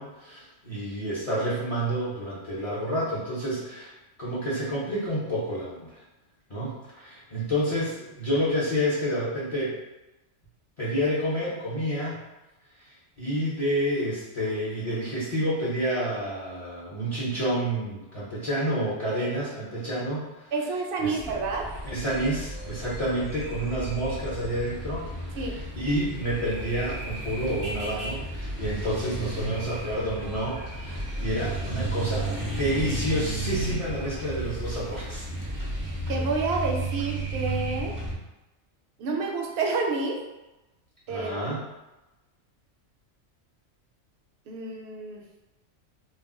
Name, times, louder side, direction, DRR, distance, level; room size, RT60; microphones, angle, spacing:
voice 1, 0.0-3.9 4.2-6.0 6.5-9.8 10.8-12.2 12.8-20.5 21.0-21.4 21.8-35.2 41.1-41.6, equal, 40° left, -9 dB, 0.5 m, -29 dB
voice 2, 20.5-21.6 25.4-25.6 36.1-37.9 39.0-40.2 41.1-41.3 44.5-45.2, right 3 dB, 65° right, 0 dB, 0.7 m, -29 dB
sound 1, 21.2-38.1, right 1 dB, 35° right, 0.3 m, -33 dB
2.3 x 2.1 x 3.6 m, 1.0 s
omnidirectional pair, 1.3 m